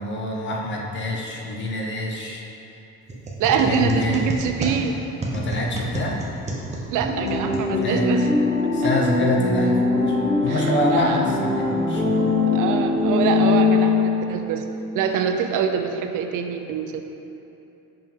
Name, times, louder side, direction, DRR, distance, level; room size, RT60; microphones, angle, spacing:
voice 1, 0.0-2.4 3.7-4.3 5.3-6.2 7.8-8.1 8.7-12.2, left 1 dB, 35° left, -1 dB, 0.7 m, -26 dB
sound 1, 3.1-8.2, right 2 dB, 20° right, 0.6 m, -31 dB
voice 2, 3.4-5.0 6.9-8.3 8.8-8.9 10.5-10.6 10.9-11.2 12.5-14.6 14.9-17.0, right 7 dB, 75° right, 5 dB, 0.5 m, -24 dB
sound 2, 7.0-14.3, left 3 dB, 15° left, 1.5 m, -21 dB
5.7 x 5.2 x 3.5 m, 2.9 s
cardioid pair, 175°, 31 cm